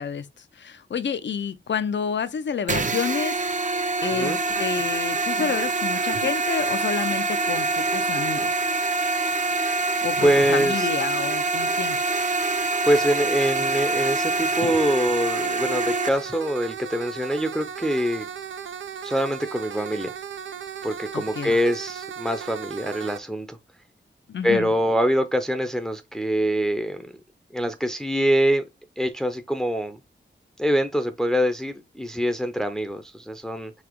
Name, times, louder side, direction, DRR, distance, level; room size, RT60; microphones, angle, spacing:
voice 1, 0.0-3.4 4.0-8.5 10.0-12.0 21.1-21.5 24.3-24.7, left 7 dB, 65° left, 0.6 m, -29 dB
sound 1, 2.7-16.1, right 2 dB, 40° right, 0.6 m, -25 dB
sound 2, 4.0-23.2, right 8 dB, 80° right, 0.5 m, -36 dB
voice 2, 10.2-10.9 12.8-18.3 19.0-20.1 20.8-23.6 24.4-27.1 27.5-28.6 29.0-30.0 30.6-33.7, equal, ahead, 0.6 m, -24 dB
4.1 x 2.8 x 4.5 m
wide cardioid pair, 80°, 20 cm